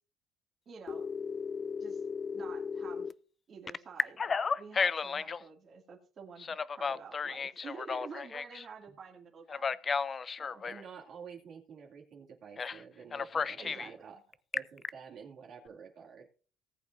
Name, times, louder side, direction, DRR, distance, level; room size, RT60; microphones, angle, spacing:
voice 1, 0.7-1.1 1.8-2.0 2.3-3.1 3.5-9.8 10.4-10.6 13.6-14.1, right 6 dB, 40° right, 0 dB, 2.3 m, -49 dB
Telephone, 0.9-3.1 3.7-5.4 6.4-8.7 9.5-10.8 12.6-12.8 13.1-13.9 14.3-14.9, left 5 dB, 30° left, 0.4 m, -34 dB
voice 2, 10.6-14.2 14.5-16.3, right 6 dB, 55° right, -2 dB, 2.2 m, -49 dB
18.5 x 8.2 x 2.6 m, 0.40 s
cardioid pair, 125°, 0 cm